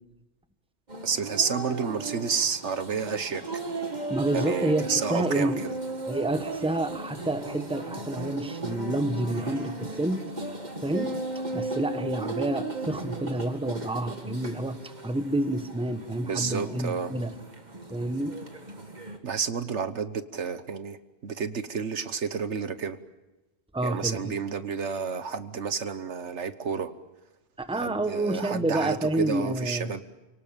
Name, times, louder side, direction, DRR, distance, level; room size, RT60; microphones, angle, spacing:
sound 1, 0.9-19.2, right 2 dB, 35° right, 2.2 m, -36 dB
voice 1, 1.0-3.4 4.3-5.7 16.2-17.1 19.2-21.0 21.2-23.0 23.8-26.9 27.8-30.0, right 6 dB, 70° right, 12 dB, 1.4 m, -30 dB
voice 2, 4.1-5.6 6.1-10.3 10.8-11.2 11.5-17.4 17.9-18.4 23.7-24.3 27.6-29.9, right 1 dB, 5° right, 9 dB, 1.2 m, -29 dB
29.0 x 18.5 x 9.0 m, 1.1 s
omnidirectional pair, 1.2 m